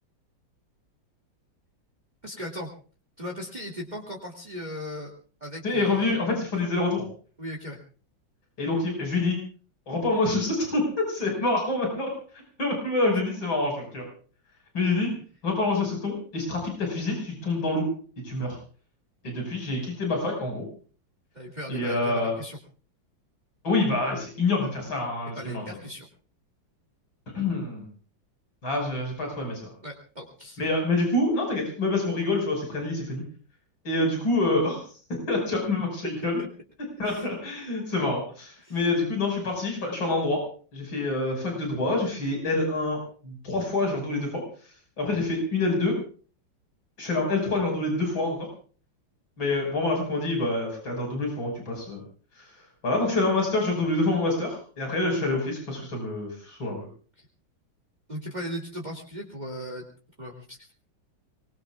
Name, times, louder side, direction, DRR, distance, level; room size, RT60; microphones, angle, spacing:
voice 1, 2.2-2.7 3.2-5.1 5.4-6.2 7.4-7.8 21.3-22.6 25.4-26.1 29.8-30.6 36.4-36.5 37.0-37.3 38.6-38.8 57.2-57.3 58.1-59.8 60.2-60.7, equal, 20° right, 0 dB, 2.5 m, -37 dB
voice 2, 5.6-7.1 8.6-9.4 9.9-12.1 12.6-14.0 14.7-15.1 15.4-17.9 18.2-18.6 19.2-20.6 21.7-22.4 23.6-25.6 27.3-27.8 28.6-29.7 30.6-33.2 33.8-34.8 35.3-36.4 37.0-40.4 40.7-44.4 45.0-46.0 47.0-48.5 49.4-52.0 52.4-52.5 52.8-56.9, left 2 dB, 85° left, 1 dB, 6.5 m, -26 dB
25.5 x 21.0 x 2.4 m, 0.41 s
omnidirectional pair, 2.1 m